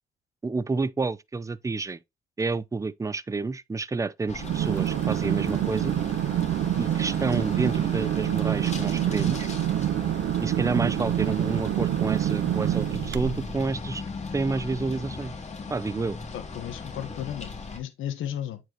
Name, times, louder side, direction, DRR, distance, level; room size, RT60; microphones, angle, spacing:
voice 1, 0.4-2.0 2.4-5.9 6.8-9.5 10.4-14.0 14.3-15.3 15.7-16.2, right 3 dB, 15° right, 0.5 m, -29 dB
sound 1, 4.3-17.8, left 4 dB, 35° left, 2.4 m, -38 dB
sound 2, 4.4-13.6, right 12 dB, 65° right, 0.6 m, -26 dB
voice 2, 16.3-18.6, left 10 dB, 80° left, 1.2 m, -34 dB
8.8 x 4.6 x 3.0 m
cardioid pair, 90°, 20 cm